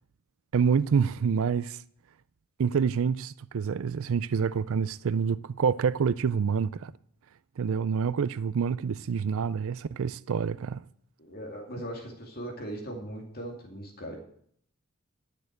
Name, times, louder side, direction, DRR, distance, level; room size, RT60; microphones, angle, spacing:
voice 1, 0.5-1.8 2.6-6.9 7.6-10.8, right 6 dB, 65° right, 0.4 m, -27 dB
voice 2, 11.2-14.2, right 1 dB, 45° left, 2.5 m, -39 dB
12.0 x 6.9 x 7.8 m
head